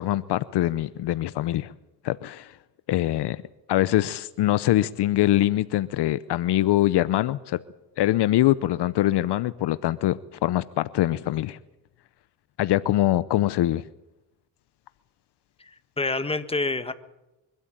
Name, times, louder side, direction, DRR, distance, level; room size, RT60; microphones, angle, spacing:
voice 1, 0.0-1.7 2.0-2.6 2.9-3.4 3.7-7.6 8.0-11.6 12.6-13.8, left 14 dB, 65° left, 0.8 m, -23 dB
voice 2, 15.6-16.9, left 2 dB, 15° left, 1.6 m, -28 dB
24.0 x 12.5 x 9.0 m
cardioid pair, 85°, 43 cm